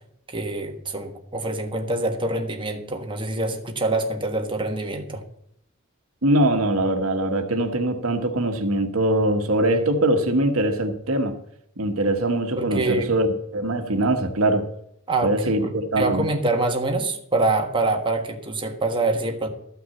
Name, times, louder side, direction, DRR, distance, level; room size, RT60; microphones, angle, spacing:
voice 1, 0.3-5.2 12.6-13.1 15.1-15.3 15.6-19.5, right 2 dB, 25° right, 3 dB, 1.5 m, -25 dB
voice 2, 6.2-11.3 11.8-14.7 15.2-16.2, right 1 dB, 75° right, 6 dB, 1.2 m, -22 dB
13.0 x 5.9 x 7.0 m, 0.73 s
head